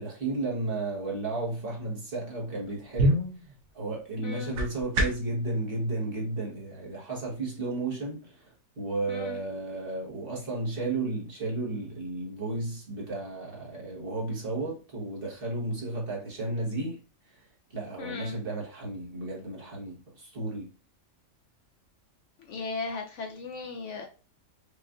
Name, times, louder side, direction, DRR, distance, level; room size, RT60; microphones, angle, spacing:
voice 1, 0.0-3.2 3.7-17.0 17.3-17.4 17.7-20.7, right 2 dB, 45° right, 1.2 m, -33 dB
sound 1, 2.8-5.4, right 1 dB, 75° right, 1.3 m, -29 dB
voice 2, 4.2-4.6 9.1-9.4 18.0-18.4 22.5-24.1, left 4 dB, 65° left, 0.8 m, -36 dB
5.1 x 2.5 x 2.4 m
omnidirectional pair, 1.5 m